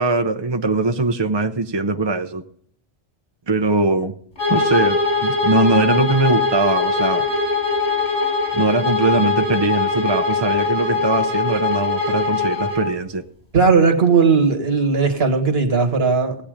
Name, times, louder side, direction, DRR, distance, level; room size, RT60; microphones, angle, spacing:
voice 1, 0.0-2.4 3.5-4.1 4.5-7.3 8.5-13.2, right 3 dB, 30° right, 6 dB, 0.6 m, -21 dB
Bowed string instrument, 4.4-12.9, left 4 dB, 55° left, 4.5 m, -21 dB
voice 2, 13.5-16.4, right 5 dB, 75° right, 3 dB, 1.9 m, -17 dB
17.0 x 8.5 x 5.1 m, 0.63 s
omnidirectional pair, 1.1 m